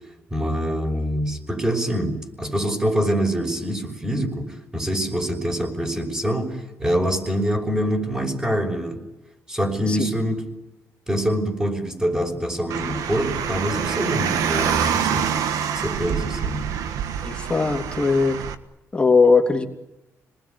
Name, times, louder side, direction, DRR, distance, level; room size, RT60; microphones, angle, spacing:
voice 1, 0.3-4.5 4.7-9.0 9.5-10.4 11.1-15.4 15.7-16.7, equal, 15° right, 3 dB, 5.7 m, -25 dB
Car, 12.7-18.5, right 8 dB, 85° right, 1.5 m, -26 dB
voice 2, 17.2-18.4 18.9-19.7, left 4 dB, 20° left, 3 dB, 3.1 m, -19 dB
27.5 x 20.5 x 9.6 m, 0.99 s
cardioid pair, 100°, 6 cm